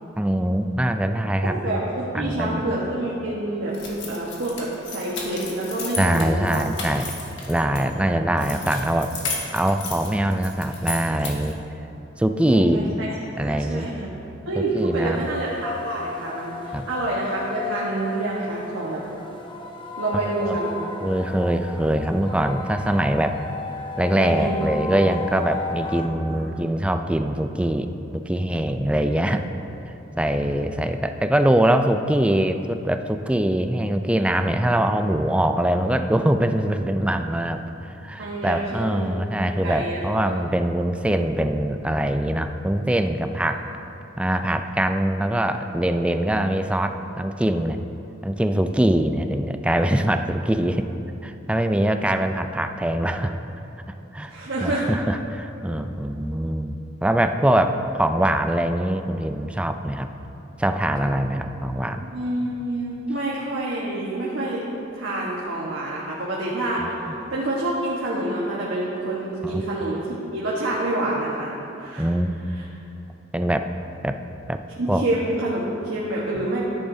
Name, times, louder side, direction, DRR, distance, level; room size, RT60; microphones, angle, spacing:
voice 1, 0.2-1.6 2.1-2.6 6.0-7.1 7.5-9.1 9.5-11.6 12.2-13.0 13.4-13.9 14.7-15.3 16.7-16.9 20.4-20.6 21.0-23.4 24.0-29.4 30.2-43.6 44.2-47.8 48.2-50.9 51.2-53.4 54.1-54.3 54.6-60.1 60.6-62.0 66.8-67.1 69.4-69.6 72.0-72.3 73.3-73.6 74.0-74.2 74.5-74.6 74.9-75.0, right 1 dB, 5° right, 7 dB, 0.3 m, -23 dB
voice 2, 1.4-6.6 8.0-8.2 12.5-13.1 13.3-14.1 14.5-19.0 20.0-20.8 24.2-24.7 25.8-26.5 30.3-30.6 38.2-39.0 39.4-40.3 43.4-43.5 54.3-54.9 62.0-64.7 64.9-70.0 70.3-72.1 72.5-72.6 74.8-76.6, right 1 dB, 80° right, -6 dB, 1.3 m, -28 dB
sound 1, 3.7-7.8 8.4-11.6, left 3 dB, 65° left, 1.7 m, -34 dB
sound 2, 15.1-26.1, left 3 dB, 25° left, 0.8 m, -34 dB
13.0 x 10.0 x 2.7 m, 2.9 s
head